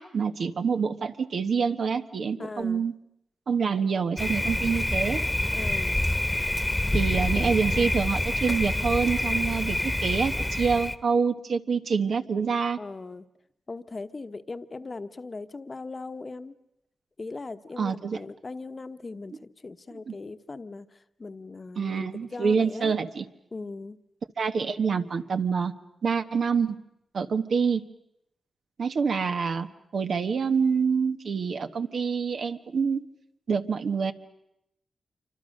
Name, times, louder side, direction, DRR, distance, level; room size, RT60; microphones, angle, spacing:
voice 1, 0.0-2.9 3.5-5.2 6.9-12.8 17.8-18.2 20.1-20.2 21.8-23.2 24.4-25.7 26.0-26.8 27.1-27.8 28.8-29.7 29.9-33.0 33.5-34.1, right 5 dB, 70° right, 8 dB, 1.2 m, -26 dB
voice 2, 2.4-2.8 5.5-6.0 12.8-13.3 13.7-16.5 17.2-22.9 23.5-24.0, left 3 dB, 40° left, 10 dB, 1.1 m, -39 dB
Thunder, 4.2-11.0, left 1 dB, 10° left, 1.3 m, -27 dB
27.0 x 25.0 x 6.5 m, 0.82 s
cardioid pair, 70°, 0 cm